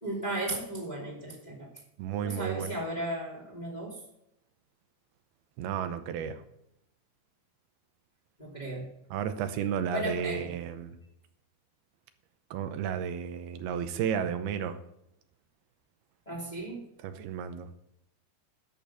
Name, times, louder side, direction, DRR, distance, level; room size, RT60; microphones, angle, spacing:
voice 1, 0.0-1.7 2.2-4.0 8.4-9.0 9.9-10.5 16.3-16.8, right 1 dB, 15° left, -3 dB, 2.4 m, -35 dB
voice 2, 2.0-2.7 5.6-6.4 9.1-11.0 12.5-14.8 17.0-17.7, right 8 dB, 85° right, 9 dB, 2.8 m, -33 dB
11.5 x 7.2 x 6.7 m, 0.80 s
omnidirectional pair, 4.5 m